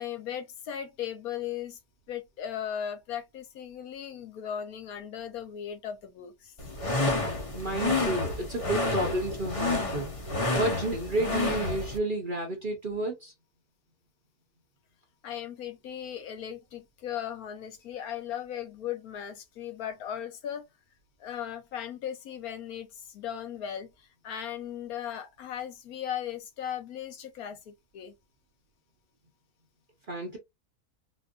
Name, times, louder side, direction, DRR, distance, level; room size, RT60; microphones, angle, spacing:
voice 1, 0.0-1.8 2.1-6.5 15.2-20.6 21.2-28.1, left 9 dB, 70° left, 1.2 m, -37 dB
sound 1, 6.6-12.0, left 2 dB, 30° left, 0.6 m, -29 dB
voice 2, 7.5-10.1 10.5-13.3 30.1-30.4, right 2 dB, 45° right, 0.7 m, -31 dB
4.2 x 2.5 x 2.5 m
omnidirectional pair, 1.7 m